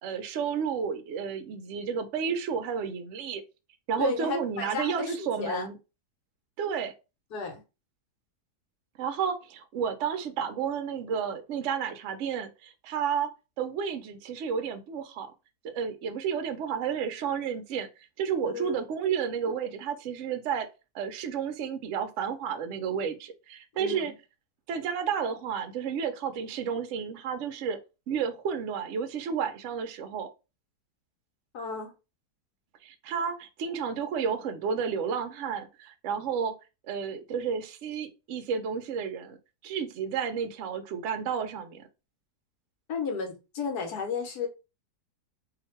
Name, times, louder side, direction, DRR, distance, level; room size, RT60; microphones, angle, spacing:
voice 1, 0.0-3.4 3.9-5.8 6.6-6.9 9.0-13.3 13.6-15.3 15.6-17.9 18.2-20.7 20.9-24.1 24.7-27.8 28.1-30.3 32.8-36.5 36.8-39.4 39.6-41.9, right 7 dB, 65° right, 0.8 m, -31 dB
voice 2, 4.0-5.7 7.3-7.6 18.4-18.8 23.8-24.1 31.5-31.9 42.9-44.5, left 5 dB, 75° left, 1.4 m, -33 dB
2.9 x 2.5 x 4.1 m
omnidirectional pair, 1.7 m